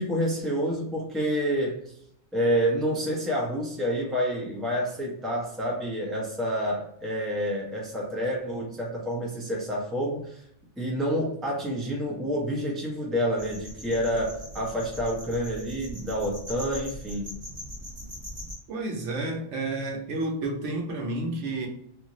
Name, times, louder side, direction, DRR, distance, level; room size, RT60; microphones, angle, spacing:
voice 1, 0.0-1.9 2.3-10.4 10.8-17.4, equal, ahead, -3 dB, 0.6 m, -28 dB
sound 1, 13.4-18.5, equal, 25° right, 1.1 m, -41 dB
voice 2, 18.7-21.7, right 2 dB, 70° right, 1 dB, 1.0 m, -30 dB
2.7 x 2.5 x 2.9 m, 0.72 s
omnidirectional pair, 1.3 m